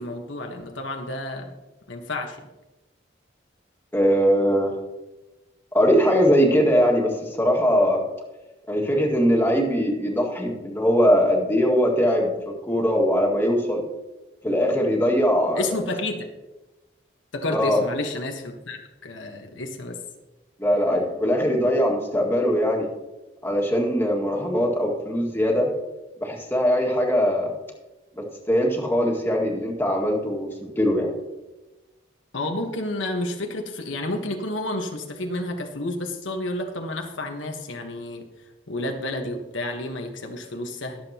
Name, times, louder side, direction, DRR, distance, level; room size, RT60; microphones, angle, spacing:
voice 1, 0.0-1.5 1.9-2.4 15.5-16.3 17.3-20.0 32.3-38.3 38.7-41.0, left 2 dB, 80° left, 3 dB, 1.3 m, -30 dB
voice 2, 3.9-4.8 5.7-8.0 8.7-13.8 14.4-15.7 17.5-17.8 20.6-22.9 23.4-25.7 26.2-27.5 28.2-31.1, equal, 10° left, -1 dB, 1.9 m, -21 dB
22.5 x 7.5 x 2.9 m, 1.1 s
head